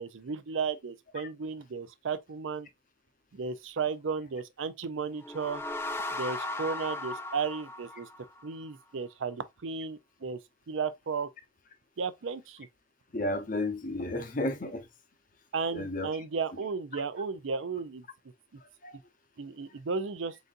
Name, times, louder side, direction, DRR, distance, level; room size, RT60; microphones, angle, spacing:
voice 1, 0.0-2.7 3.3-5.6 6.1-8.1 8.4-10.4 10.7-11.3 12.0-12.7 15.5-18.0 19.4-20.4, right 5 dB, 75° right, 0.5 m, -34 dB
sound 1, 5.1-8.6, left 2 dB, 10° left, 0.4 m, -37 dB
voice 2, 13.1-14.9 15.7-16.1 18.8-19.0, left 1 dB, 45° left, 0.8 m, -32 dB
4.0 x 3.9 x 2.5 m
head